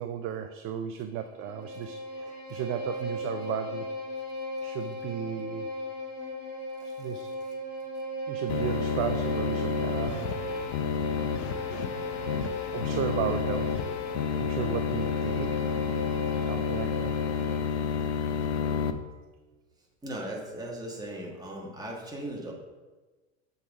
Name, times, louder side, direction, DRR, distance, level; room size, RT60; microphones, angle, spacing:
voice 1, 0.0-3.9 4.6-5.7 6.8-7.3 8.3-10.5 11.2-11.3 12.7-13.9 14.4-15.6 16.4-17.1, right 9 dB, 40° right, 8 dB, 0.5 m, -35 dB
Bowed string instrument, 1.1-17.7, equal, 20° left, 2.2 m, -37 dB
sound 1, 8.5-18.9, left 7 dB, 70° left, 0.7 m, -30 dB
voice 2, 20.0-22.5, right 1 dB, 10° right, -1 dB, 1.6 m, -37 dB
7.5 x 4.0 x 4.8 m, 1.2 s
hypercardioid pair, 90°, 35 cm